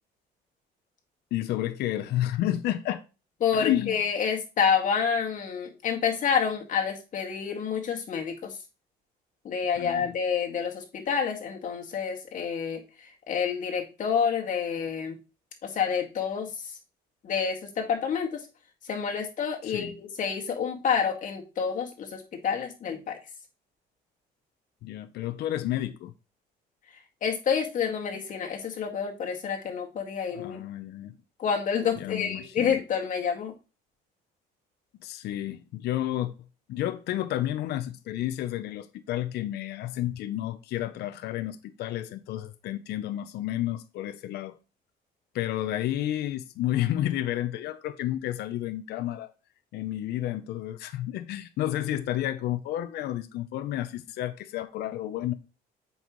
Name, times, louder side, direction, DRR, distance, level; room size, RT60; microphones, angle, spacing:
voice 1, 1.3-3.0 3.5-4.0 9.8-10.2 19.6-20.0 24.8-26.1 30.3-31.2 32.0-32.8 35.0-36.3 36.7-44.6 45.3-49.3 49.7-55.3, left 13 dB, 75° left, 0.7 m, -31 dB
voice 2, 3.4-8.6 9.4-15.1 15.6-16.8 17.2-18.4 18.9-23.2 27.2-30.6 31.4-33.5, left 7 dB, 50° left, 2.0 m, -28 dB
7.8 x 5.6 x 3.1 m
cardioid pair, 110°, 17 cm